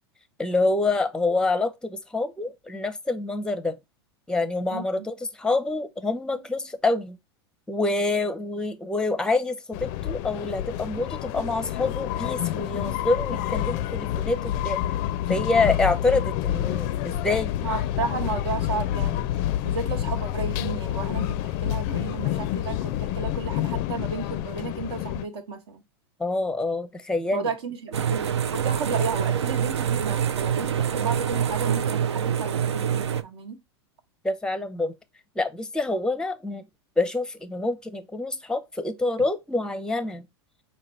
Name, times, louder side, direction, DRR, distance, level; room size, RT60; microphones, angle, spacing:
voice 1, 0.4-3.8 4.3-7.2 7.7-14.8 15.3-17.5 26.2-27.5 34.2-34.9 35.4-36.6 37.0-40.2, left 3 dB, 5° left, 0.6 m, -26 dB
voice 2, 4.7-5.1 17.6-19.3 19.6-25.8 27.3-28.2 28.5-33.6, right 4 dB, 70° right, 1.1 m, -33 dB
sound 1, 9.7-25.2, left 12 dB, 50° left, 0.4 m, -28 dB
sound 2, 27.9-33.2, right 8 dB, 85° right, 0.5 m, -25 dB
4.9 x 2.2 x 4.3 m
hypercardioid pair, 100°, 14 cm